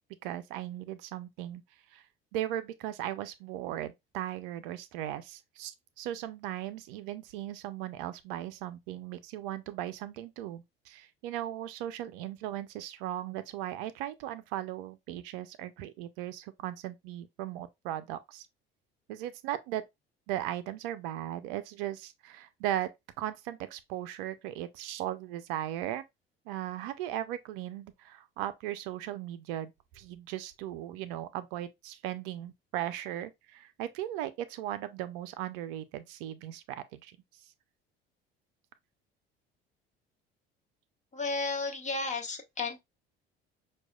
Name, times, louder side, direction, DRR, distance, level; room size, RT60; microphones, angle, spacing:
voice 1, 0.2-1.6 1.9-2.1 2.3-18.5 19.1-19.8 20.3-22.9 23.2-26.0 26.5-37.2, right 12 dB, 65° right, 0.5 m, -37 dB
voice 2, 41.1-42.8, left 3 dB, 25° left, 1.3 m, -33 dB
6.0 x 2.4 x 2.3 m
hypercardioid pair, 60°, 30 cm